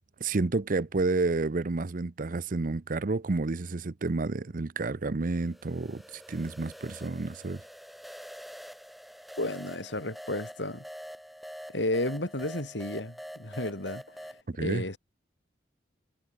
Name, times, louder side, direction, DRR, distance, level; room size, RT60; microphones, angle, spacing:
voice 1, 0.2-6.0 6.3-7.6 14.6-14.8, right 3 dB, 50° right, 0.7 m, -30 dB
sound 1, 5.3-14.4, equal, ahead, 5.7 m, -45 dB
voice 2, 9.4-10.8 11.7-15.0, left 1 dB, 80° left, 4.7 m, -33 dB
head